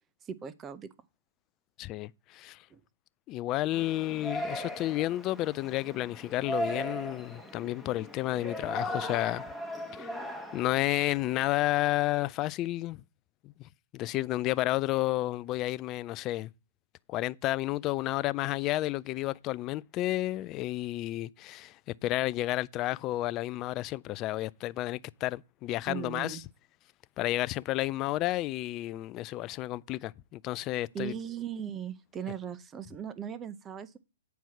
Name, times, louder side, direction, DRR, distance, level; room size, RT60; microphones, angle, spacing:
voice 1, 0.2-0.9 2.7-2.8 25.9-26.4 30.9-34.0, right 8 dB, 20° right, 0.7 m, -38 dB
voice 2, 1.8-2.6 3.3-9.5 10.0-10.1 10.5-13.0 13.4-16.5 17.1-21.8 22.0-26.4 27.2-31.1, left 16 dB, 30° left, 0.3 m, -31 dB
Yell, 3.7-11.4, equal, ahead, 1.1 m, -38 dB
9.2 x 4.7 x 5.7 m
hypercardioid pair, 140°, 0 cm